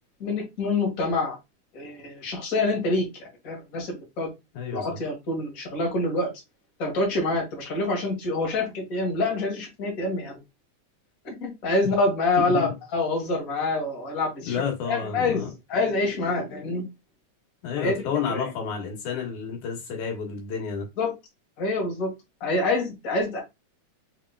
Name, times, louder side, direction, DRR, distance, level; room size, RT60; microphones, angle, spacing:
voice 1, 0.2-1.4 1.7-4.3 4.7-6.3 6.8-10.4 11.2-14.6 14.8-15.4 15.7-16.8 17.8-18.5 21.0-21.1 21.6-22.1 22.4-23.4, left 2 dB, 30° left, 1.9 m, -26 dB
voice 2, 4.5-5.0 12.4-12.7 14.5-15.5 17.6-20.9, left 7 dB, 70° left, 2.8 m, -30 dB
5.7 x 3.6 x 2.2 m
omnidirectional pair, 3.7 m